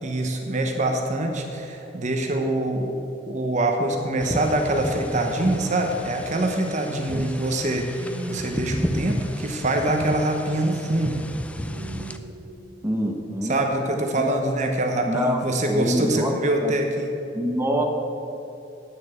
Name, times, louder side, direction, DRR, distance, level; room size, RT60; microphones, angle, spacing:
voice 1, 0.0-2.9 3.3-11.3 13.5-17.1, right 1 dB, 40° right, 3 dB, 0.9 m, -24 dB
sound 1, 4.0-5.1 6.6-13.1, equal, 80° right, 1.4 m, -38 dB
sound 2, 4.2-12.2, equal, 5° left, 0.4 m, -33 dB
voice 2, 12.8-13.6 14.2-14.3 15.1-15.4 15.7-16.3 16.6-16.7 17.3-17.8, equal, 15° right, 1 dB, 1.0 m, -25 dB
9.0 x 6.8 x 8.0 m, 3.0 s
head